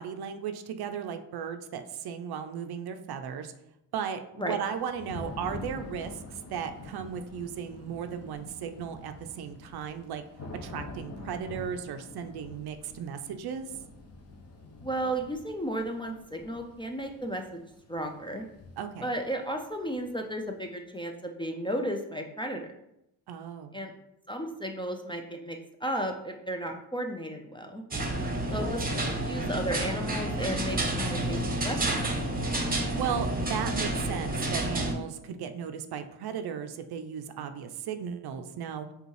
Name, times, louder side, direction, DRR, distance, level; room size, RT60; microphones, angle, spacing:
voice 1, 0.0-3.5 3.9-10.2 10.6-13.7 18.8-19.1 23.3-23.8 28.1-28.6 33.0-38.9, right 7 dB, 60° right, 8 dB, 0.5 m, -36 dB
Thunder / Rain, 4.6-20.4, left 2 dB, 35° left, 0.9 m, -46 dB
voice 2, 14.8-17.6 17.9-18.5 19.0-22.7 23.7-23.9 24.3-27.8 28.5-31.8 32.0-32.1, right 1 dB, 10° left, 2 dB, 0.4 m, -34 dB
sound 1, 27.9-34.9, right 1 dB, 20° right, 0.9 m, -30 dB
5.1 x 2.4 x 3.2 m, 0.83 s
supercardioid pair, 65°, 45 cm